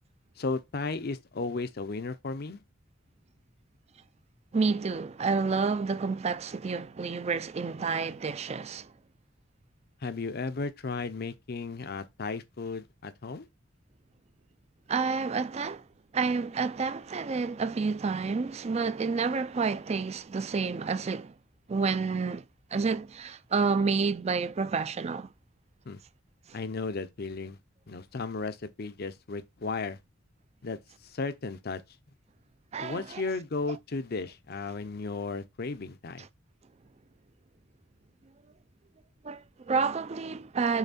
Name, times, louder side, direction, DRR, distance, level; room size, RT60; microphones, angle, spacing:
voice 1, 0.4-2.6 10.0-13.5 25.9-26.0 26.5-27.6 27.9-30.0 30.6-31.8 32.8-36.3, left 3 dB, 50° left, 0.6 m, -35 dB
voice 2, 4.5-8.9 14.9-15.8 16.1-21.3 21.7-22.4 22.7-25.3 32.7-33.2 36.2-36.3 39.2-40.8, right 4 dB, 35° right, 0.4 m, -29 dB
7.1 x 3.2 x 4.2 m
head